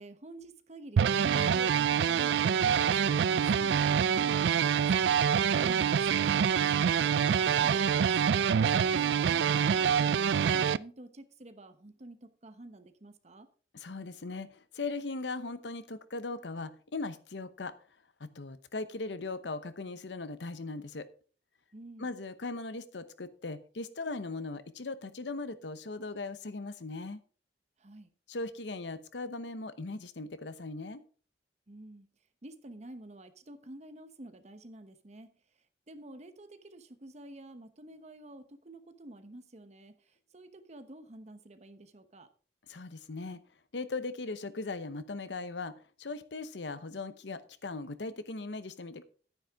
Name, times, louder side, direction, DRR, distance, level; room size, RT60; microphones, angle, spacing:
voice 1, 0.0-10.1 10.4-13.5 21.7-22.1 27.8-28.1 31.7-32.1 32.4-35.3 35.9-42.3, right 1 dB, 40° right, 1.0 m, -49 dB
sound 1, 1.0-10.8, right 7 dB, 80° right, 0.3 m, -26 dB
voice 2, 13.7-14.5 14.7-17.7 18.2-21.1 22.0-27.2 28.3-31.0 42.7-43.4 43.7-45.7 46.0-49.0, left 3 dB, 85° left, 0.9 m, -39 dB
10.5 x 9.7 x 3.6 m
head